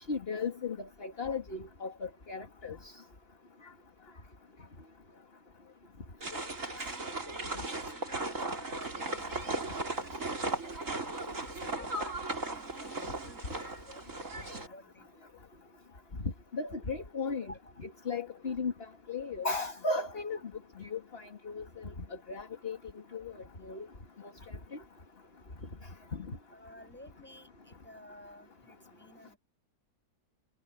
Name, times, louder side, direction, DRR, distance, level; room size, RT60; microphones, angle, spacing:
voice 1, 0.1-0.8 1.0-2.8 16.5-17.5 18.1-18.7 19.1-20.4 20.9-21.0 21.5-21.6 22.3-22.8 23.1-23.2 23.7-23.8, left 4 dB, 35° left, 2.2 m, -35 dB
sound 1, 6.2-14.7, right 2 dB, 50° right, 4.2 m, -37 dB
voice 2, 6.6-11.0 11.4-14.0 14.3-15.3 17.4-17.6 26.5-29.4, left 1 dB, 5° left, 8.0 m, -54 dB
omnidirectional pair, 1.7 m